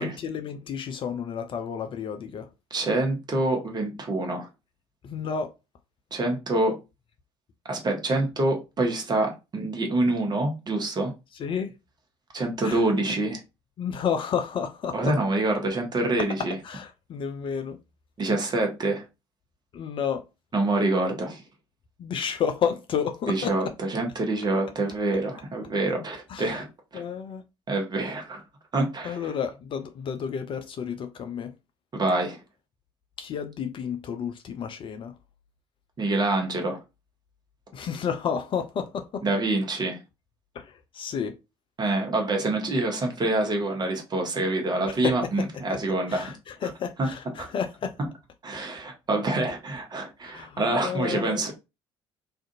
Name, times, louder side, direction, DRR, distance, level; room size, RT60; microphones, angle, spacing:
voice 1, 0.0-2.5 5.0-5.5 11.3-11.7 12.6-12.8 13.8-15.1 16.6-17.8 19.7-20.2 22.0-23.7 26.3-26.6 26.9-27.4 29.0-31.5 33.2-35.1 37.7-39.2 40.5-41.4 44.9-45.8 46.1-47.9 50.2-51.4, left 7 dB, 35° left, 0.4 m, -31 dB
voice 2, 2.7-4.5 6.1-6.8 7.7-11.1 12.3-13.4 14.9-16.5 18.2-19.0 20.5-21.4 23.3-26.7 26.9-27.0 27.7-28.4 28.7-29.2 31.9-32.4 36.0-36.8 39.2-40.0 41.8-46.3 47.0-47.1 47.4-47.5 48.4-51.5, right 2 dB, 30° right, 1.0 m, -26 dB
2.5 x 2.4 x 2.5 m
figure-of-eight pair, 50°, 14 cm